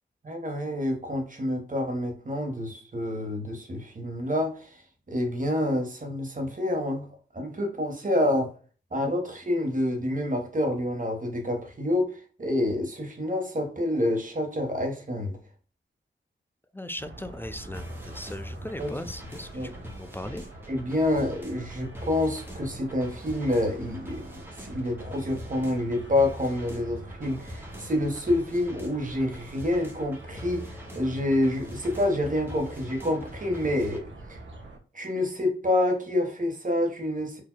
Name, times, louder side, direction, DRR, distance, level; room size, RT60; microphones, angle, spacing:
voice 1, 0.2-4.8 5.1-7.0 7.3-8.5 8.9-15.4 18.8-18.9 19.5-19.7 20.7-34.0 34.3-34.4 34.9-37.4, left 1 dB, 40° right, 1.4 m, -28 dB
voice 2, 16.7-20.4, left 1 dB, 10° left, 0.4 m, -38 dB
sound 1, 17.0-34.8, right 2 dB, 60° right, 1.2 m, -45 dB
sound 2, 17.6-34.0, left 1 dB, 10° right, 1.3 m, -43 dB
4.8 x 2.7 x 2.2 m
cardioid pair, 50°, 21 cm